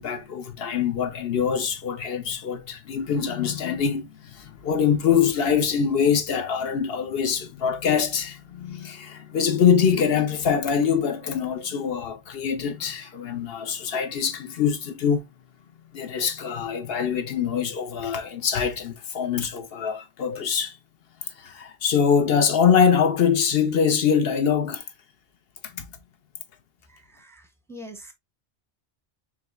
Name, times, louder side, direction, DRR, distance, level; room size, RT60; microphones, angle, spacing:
voice 1, 0.0-15.3 15.9-20.8 21.4-24.8 25.6-25.9, left 7 dB, 70° left, 0.9 m, -24 dB
voice 2, 27.1-28.1, equal, 5° left, 0.7 m, -43 dB
5.0 x 3.3 x 2.3 m
omnidirectional pair, 1.1 m